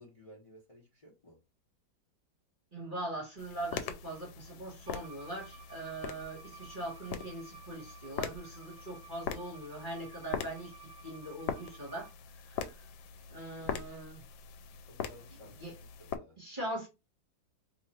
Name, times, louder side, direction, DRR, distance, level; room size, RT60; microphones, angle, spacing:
voice 1, 0.0-1.4 14.9-16.4, left 1 dB, 25° left, 0.8 m, -56 dB
voice 2, 2.7-12.1 12.5-12.7 13.3-14.2 15.6-15.7 16.4-16.9, right 1 dB, 30° right, 1.1 m, -41 dB
sound 1, 3.4-16.2, left 8 dB, 90° left, 1.3 m, -42 dB
Bowed string instrument, 4.9-12.1, right 6 dB, 65° right, 1.1 m, -54 dB
3.0 x 2.5 x 4.2 m
omnidirectional pair, 2.0 m